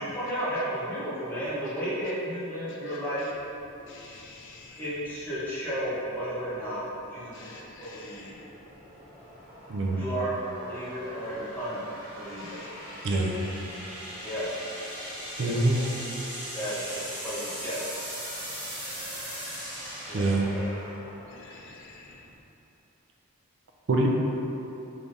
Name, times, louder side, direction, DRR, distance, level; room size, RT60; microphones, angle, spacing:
voice 1, 0.0-3.3 4.8-7.5 7.8-8.4 9.9-11.9 12.1-12.6 14.2-14.5 15.4-15.9 16.5-17.8 20.0-20.3 20.5-20.7, equal, 10° left, -11 dB, 0.9 m, -33 dB
sound 1, 3.5-22.4, equal, 25° right, 1.0 m, -41 dB
voice 2, 3.9-4.8 7.3-8.1 12.4-13.1 14.1-14.2 21.3-22.1, left 3 dB, 55° left, -2 dB, 0.5 m, -49 dB
voice 3, 9.7-10.0 13.0-13.3 15.4-15.8 20.1-20.5 23.9-24.1, right 2 dB, 55° right, 0 dB, 0.4 m, -24 dB
3.5 x 3.3 x 2.6 m, 2.9 s
head